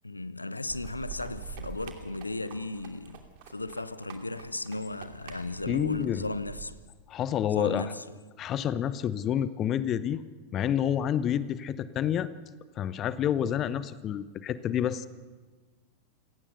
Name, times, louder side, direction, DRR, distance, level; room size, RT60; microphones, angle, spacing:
voice 1, 0.0-6.8 7.5-8.0, left 2 dB, 80° left, 1.0 m, -35 dB
sound 1, 0.7-6.7, right 6 dB, 50° right, 2.7 m, -45 dB
voice 2, 5.7-6.2 7.1-7.9 8.4-10.2 10.5-12.3 12.8-15.1, left 10 dB, 30° left, 0.9 m, -28 dB
28.0 x 17.5 x 6.8 m
figure-of-eight pair, 90°, 0 cm